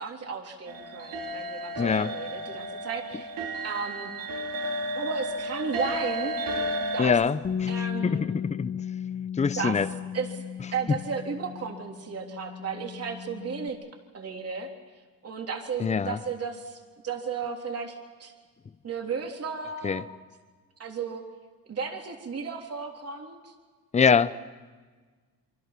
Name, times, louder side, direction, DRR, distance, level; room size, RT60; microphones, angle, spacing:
voice 1, 0.0-3.3 3.6-4.1 4.9-6.4 6.9-7.2 7.7-8.2 9.6-9.8 10.1-10.4 10.7-13.8 14.1-14.7 15.2-18.3 18.8-20.1 20.8-21.2 21.7-23.5, right 5 dB, 45° right, 2 dB, 3.6 m, -34 dB
sound 1, 0.7-7.1, equal, 70° right, 3.8 m, -32 dB
voice 2, 1.8-2.2 7.0-7.7 8.0-8.7 9.4-9.9 15.8-16.2 19.8-20.0 23.9-24.3, left 6 dB, 20° left, 15 dB, 0.7 m, -24 dB
Bass guitar, 7.4-13.7, left 8 dB, 40° left, 1.8 m, -35 dB
28.0 x 24.5 x 6.1 m, 1.4 s
cardioid pair, 115°, 35 cm